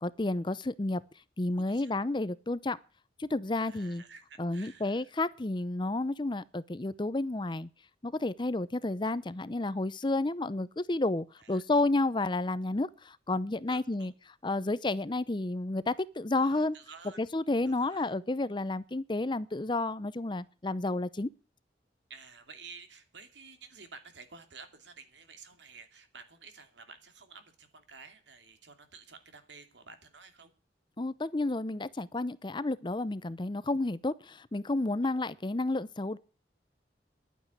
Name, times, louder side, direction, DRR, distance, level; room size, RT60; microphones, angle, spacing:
voice 1, 0.0-1.0 1.4-2.8 3.2-4.0 4.4-7.7 8.0-14.1 14.4-16.8 17.2-21.3 31.0-36.2, left 2 dB, 25° left, 0.6 m, -31 dB
voice 2, 1.5-1.9 3.6-5.1 11.4-11.6 13.7-14.1 16.3-17.2 17.7-18.1 22.1-30.5, right 5 dB, 85° right, 2.6 m, -52 dB
11.5 x 9.3 x 9.5 m
head